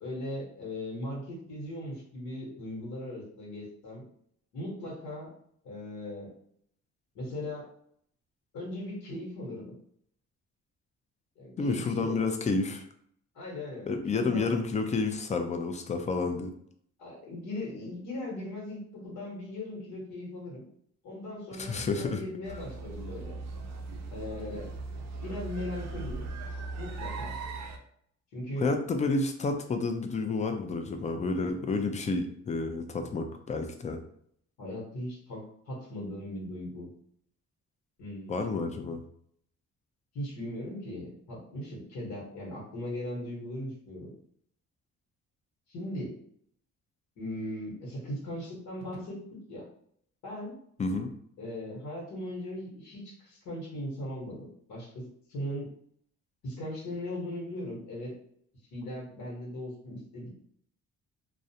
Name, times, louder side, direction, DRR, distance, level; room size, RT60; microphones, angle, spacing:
voice 1, 0.0-4.0 4.5-5.3 5.6-6.3 7.1-7.7 8.5-9.7 11.4-12.3 13.3-13.9 14.2-14.5 17.0-20.7 21.0-23.4 24.1-24.7 25.2-26.2 26.8-27.4 28.3-28.7 34.6-36.9 38.0-38.5 40.1-44.1 45.7-46.1 47.2-49.2 49.5-49.6 50.2-50.6 51.4-55.7 56.4-58.1 58.7-60.3, left 1 dB, 80° left, -4 dB, 1.1 m, -38 dB
voice 2, 11.6-12.8 13.9-16.5 21.6-22.2 28.6-34.0 38.3-39.0 50.8-51.1, left 3 dB, 25° left, 6 dB, 0.4 m, -30 dB
sound 1, 22.4-27.8, right 3 dB, 65° right, 0.5 m, -38 dB
2.4 x 2.1 x 2.7 m, 0.66 s
cardioid pair, 90°, 30 cm